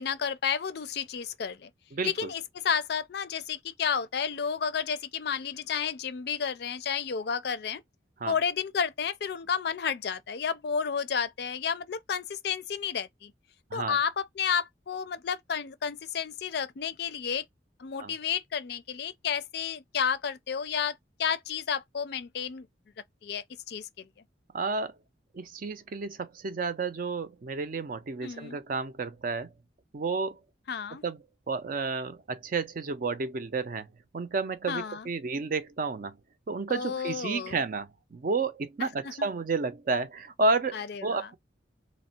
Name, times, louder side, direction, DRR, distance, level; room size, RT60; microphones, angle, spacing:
voice 1, 0.0-1.7 2.0-7.8 8.3-13.3 13.7-17.4 17.8-22.7 23.2-24.1 28.2-28.6 30.7-31.0 34.7-35.1 36.7-37.6 38.8-39.3 40.7-41.3, left 7 dB, 55° left, 0.4 m, -31 dB
voice 2, 1.9-2.3 8.2-8.3 13.7-14.0 18.0-18.1 24.5-24.9 25.3-29.5 29.9-30.4 31.0-33.9 34.1-36.2 36.5-41.4, right 4 dB, 45° right, 0.4 m, -31 dB
3.4 x 2.1 x 4.1 m
head